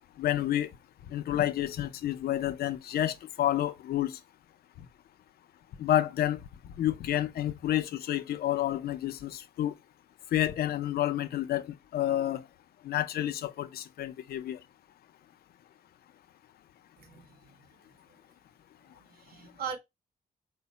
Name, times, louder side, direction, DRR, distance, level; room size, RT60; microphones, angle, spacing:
voice 1, 0.2-0.7 1.1-4.2 5.8-6.4 6.8-9.7 10.3-12.4 12.8-14.6, left 12 dB, 85° left, 0.5 m, -29 dB
voice 2, 17.0-18.2 18.9-19.8, right 7 dB, 75° right, 0.8 m, -42 dB
4.6 x 2.1 x 4.1 m
wide cardioid pair, 130°, 16 cm